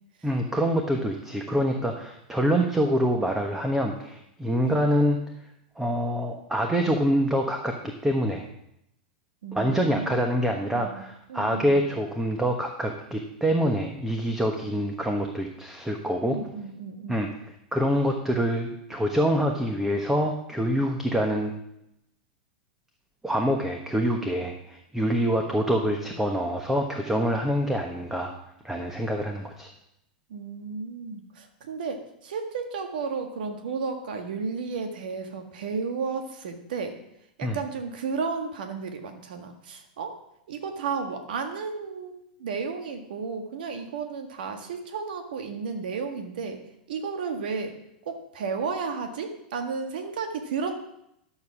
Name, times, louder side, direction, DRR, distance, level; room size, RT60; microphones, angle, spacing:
voice 1, 0.2-5.2 5.8-8.5 9.5-16.4 17.1-17.3 17.7-21.5 23.2-28.3 28.6-29.7 37.4-37.6, equal, 5° right, 3 dB, 1.3 m, -26 dB
voice 2, 9.4-10.2 10.7-11.0 11.3-11.8 16.3-17.2 30.3-37.0 37.4-40.2 40.5-46.6 46.9-47.7 48.0-50.8, right 5 dB, 75° right, 5 dB, 1.6 m, -33 dB
12.0 x 7.2 x 6.2 m, 0.80 s
hypercardioid pair, 110°, 5 cm